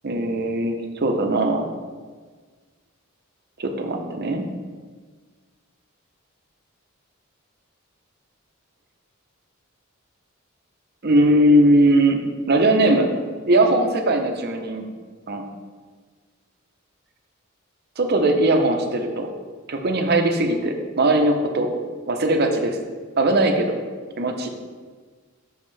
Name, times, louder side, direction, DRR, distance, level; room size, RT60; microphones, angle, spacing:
voice 1, 0.0-1.7 3.6-4.4 11.0-12.2 12.5-13.1 13.5-14.9 15.3-15.4 18.0-19.3 19.7-21.7 22.1-22.8 23.2-23.8 24.2-24.5, right 1 dB, 50° right, 4 dB, 0.8 m, -19 dB
7.2 x 6.3 x 3.3 m, 1.5 s
head